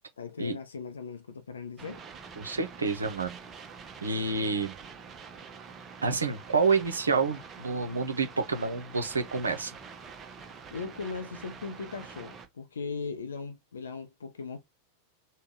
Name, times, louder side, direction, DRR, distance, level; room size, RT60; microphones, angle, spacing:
voice 1, 0.2-2.0 10.7-14.6, left 4 dB, 70° left, 0.5 m, -38 dB
sound 1, 1.8-12.5, right 5 dB, 25° right, 0.7 m, -46 dB
voice 2, 2.4-3.4 4.0-4.7 6.0-9.7, right 4 dB, 75° right, 0.7 m, -28 dB
3.3 x 2.2 x 3.6 m
figure-of-eight pair, 90°, 0 cm